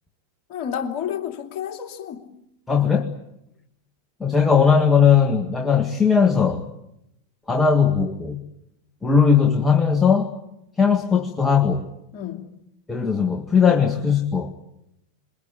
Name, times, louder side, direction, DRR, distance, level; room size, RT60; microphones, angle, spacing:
voice 1, 0.5-2.3 12.1-12.5, left 9 dB, 40° left, 4 dB, 2.8 m, -30 dB
voice 2, 2.7-3.1 4.2-6.6 7.5-8.4 9.0-10.3 10.8-11.9 12.9-14.5, left 6 dB, 10° left, 4 dB, 1.8 m, -18 dB
27.5 x 22.5 x 8.8 m, 0.82 s
figure-of-eight pair, 90°, 0 cm